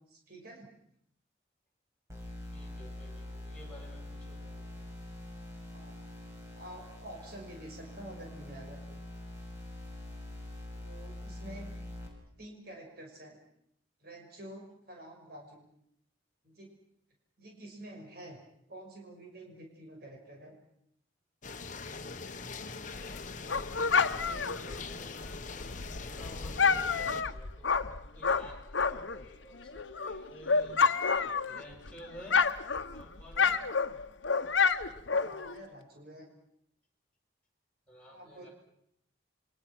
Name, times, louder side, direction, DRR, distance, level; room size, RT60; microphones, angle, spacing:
voice 1, 0.1-0.7 5.7-5.9 6.6-9.0 10.8-11.7 12.4-13.4 14.0-15.6 16.4-16.7 17.4-18.4 18.7-20.6 31.0-31.1 34.2-34.3 35.1-36.3 38.1-38.5, right 1 dB, 55° right, 1 dB, 5.9 m, -48 dB
sound 1, 2.1-12.1, left 1 dB, 15° right, 6.7 m, -44 dB
voice 2, 2.5-4.8 24.1-30.8 31.1-32.4 32.9-33.6 37.9-38.5, equal, 5° left, -3 dB, 7.5 m, -52 dB
sound 2, 21.4-27.2, left 4 dB, 40° left, 1.2 m, -42 dB
Dog, 23.0-29.2 29.6-31.9 32.2-35.6, left 5 dB, 80° left, 1.1 m, -29 dB
27.5 x 24.5 x 6.2 m, 0.72 s
head